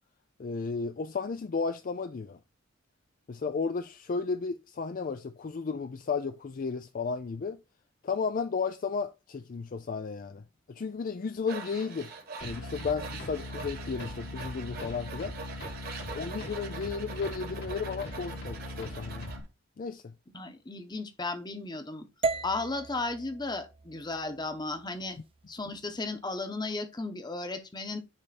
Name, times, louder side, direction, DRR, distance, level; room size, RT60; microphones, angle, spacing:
voice 1, 0.4-2.4 3.3-7.6 8.0-12.1 12.4-15.4 16.1-19.3 19.8-20.1, left 5 dB, 45° left, 0.4 m, -34 dB
Tools, 11.5-19.4, right 4 dB, 55° right, 1.6 m, -43 dB
sound 1, 12.4-19.4, left 1 dB, 65° left, 1.7 m, -41 dB
voice 2, 20.3-22.1 22.4-25.2 25.5-28.0, left 3 dB, 20° left, 1.0 m, -35 dB
sound 2, 22.2-26.4, right 3 dB, 30° right, 0.4 m, -37 dB
9.8 x 3.5 x 4.2 m
head